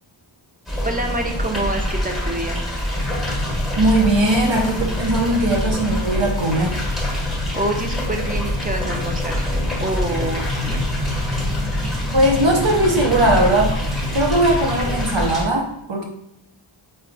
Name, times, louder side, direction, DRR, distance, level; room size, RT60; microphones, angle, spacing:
sound 1, 0.7-15.5, equal, ahead, 1.2 m, -26 dB
voice 1, 0.8-2.6 7.5-9.4 9.8-10.9, right 2 dB, 20° right, 3 dB, 0.5 m, -26 dB
sound 2, 2.9-15.1, left 3 dB, 65° left, 0.6 m, -30 dB
voice 2, 3.8-6.7 12.1-13.7 14.1-16.0, right 1 dB, 65° right, 0 dB, 0.8 m, -19 dB
sound 3, 10.1-15.2, equal, 35° right, 0.8 m, -32 dB
4.6 x 2.3 x 2.5 m, 0.83 s
wide cardioid pair, 40°, 49 cm